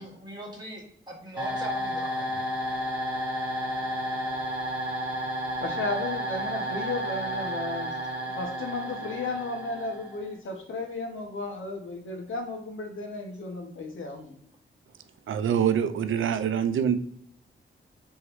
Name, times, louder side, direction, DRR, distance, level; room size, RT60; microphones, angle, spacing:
voice 1, 0.0-2.4, right 1 dB, 20° right, -2 dB, 1.3 m, -40 dB
sound 1, 1.4-10.3, equal, 5° right, 1.5 m, -32 dB
voice 2, 5.6-8.0 8.3-14.4, left 3 dB, 85° left, 3 dB, 1.1 m, -34 dB
voice 3, 15.3-17.0, right 8 dB, 85° right, 10 dB, 0.5 m, -25 dB
3.5 x 3.1 x 4.7 m, 0.66 s
wide cardioid pair, 125°, 20 cm